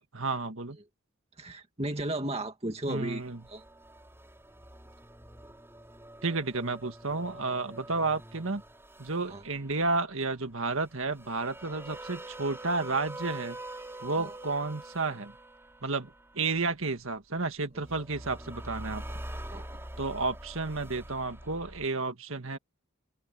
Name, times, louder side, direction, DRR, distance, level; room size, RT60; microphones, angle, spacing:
voice 1, 0.1-0.8 2.9-3.4 6.2-8.6 9.0-13.6 14.0-15.3 15.8-19.0 20.0-22.6, right 3 dB, 70° right, 1.8 m, -31 dB
voice 2, 1.4-3.2 3.5-3.6 9.3-9.4 14.2-14.4 19.5-19.8, right 1 dB, 30° right, 2.1 m, -34 dB
sound 1, 2.9-9.9 10.8-16.6 17.8-21.8, right 1 dB, 10° right, 4.5 m, -45 dB
open air
head